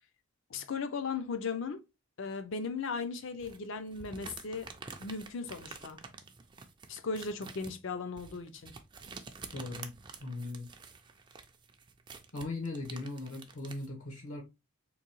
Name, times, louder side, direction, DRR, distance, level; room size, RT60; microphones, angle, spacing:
voice 1, 0.5-1.8 2.2-4.7 5.0-6.0 6.9-8.7, left 4 dB, 55° left, 0.5 m, -37 dB
sound 1, 3.4-13.9, right 4 dB, 20° right, 0.3 m, -49 dB
voice 2, 9.5-9.9 10.2-10.7 12.3-14.4, left 2 dB, 80° left, 1.1 m, -39 dB
3.8 x 2.7 x 3.0 m
head